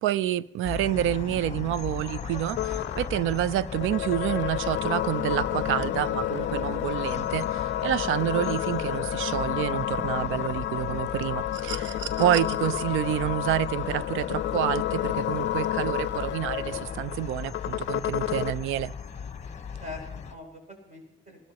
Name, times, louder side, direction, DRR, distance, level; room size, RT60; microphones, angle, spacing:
voice 1, 0.0-18.9, right 12 dB, 85° right, 0.5 m, -28 dB
sound 1, 0.6-20.3, left 6 dB, 35° left, 1.0 m, -38 dB
sound 2, 2.6-18.6, left 13 dB, 70° left, 0.5 m, -30 dB
sound 3, 11.5-12.5 14.1-14.2, right 9 dB, 65° right, 1.1 m, -37 dB
voice 2, 19.7-21.5, left 2 dB, 40° right, 6.2 m, -44 dB
21.5 x 13.0 x 2.9 m
cardioid pair, 90°, 20 cm